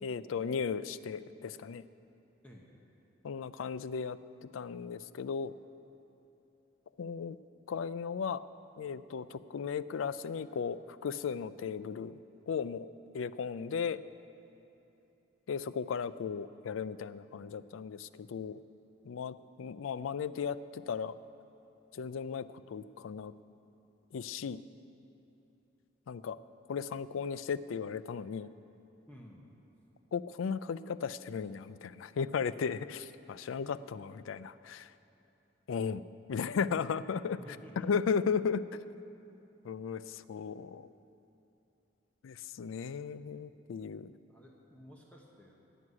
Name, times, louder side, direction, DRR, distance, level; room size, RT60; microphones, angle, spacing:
voice 1, 0.0-1.8 3.2-5.5 7.0-7.4 7.7-8.4 8.8-12.2 12.5-12.9 13.1-14.0 15.5-18.6 19.1-21.1 21.9-23.3 24.1-24.6 26.1-26.4 26.7-28.5 30.1-34.9 35.7-36.0 36.3-37.4 37.8-38.6 39.6-40.9 42.2-44.1, left 6 dB, 85° left, 16 dB, 0.4 m, -36 dB
voice 2, 2.4-2.8 29.1-29.5 37.4-38.0 44.3-45.5, equal, 5° left, -2 dB, 1.1 m, -53 dB
11.0 x 8.0 x 9.7 m, 2.9 s
head